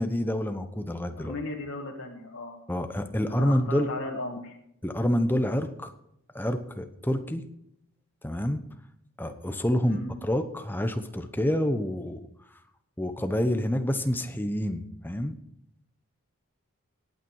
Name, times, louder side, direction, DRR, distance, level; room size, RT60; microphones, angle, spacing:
voice 1, 0.0-1.3 2.7-3.9 4.8-5.9 6.3-7.4 8.2-8.6 9.2-12.2 13.0-15.4, equal, 10° left, 8 dB, 0.9 m, -27 dB
voice 2, 1.2-2.6 3.2-4.6 9.8-10.2, left 2 dB, 85° left, -2 dB, 1.9 m, -36 dB
18.0 x 9.1 x 4.7 m, 0.76 s
head